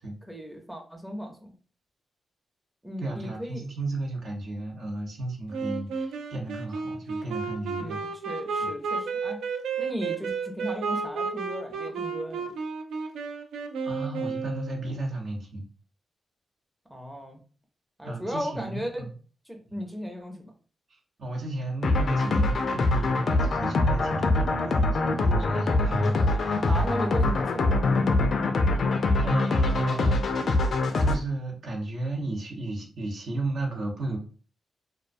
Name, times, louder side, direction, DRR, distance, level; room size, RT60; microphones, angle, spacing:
voice 1, 0.3-1.5 2.8-3.6 7.8-9.4 9.8-12.5 16.9-17.4 18.0-19.1 19.5-20.5 26.6-28.4, equal, 5° right, 2 dB, 0.5 m, -36 dB
voice 2, 3.0-8.0 8.6-8.7 13.8-15.6 18.0-19.1 19.7-19.8 21.2-26.7 29.2-30.2 31.0-34.2, right 2 dB, 65° right, 0 dB, 0.8 m, -34 dB
Wind instrument woodwind instrument, 5.5-15.0, right 5 dB, 90° right, 0.3 m, -32 dB
sound 1, 21.8-31.2, left 2 dB, 60° left, 0.3 m, -24 dB
2.3 x 2.2 x 2.5 m, 0.39 s
cardioid pair, 75°, 0 cm